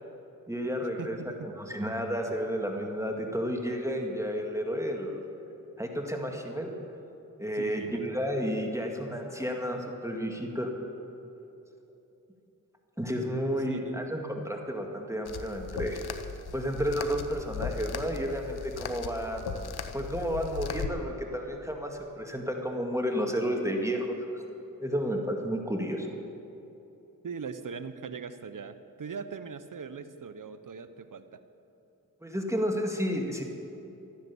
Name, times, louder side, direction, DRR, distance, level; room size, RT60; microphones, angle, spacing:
voice 1, 0.5-5.2 5.8-6.7 7.4-10.7 13.0-16.0 16.5-19.4 19.9-24.4 24.8-26.1 32.2-33.4, equal, 10° right, 2 dB, 2.1 m, -31 dB
voice 2, 1.0-1.5 7.5-8.1 13.7-14.0 27.2-31.4, right 5 dB, 55° right, 11 dB, 0.9 m, -40 dB
sound 1, 15.3-20.9, left 6 dB, 80° left, 0.9 m, -37 dB
14.0 x 10.5 x 7.0 m, 3.0 s
cardioid pair, 40°, 38 cm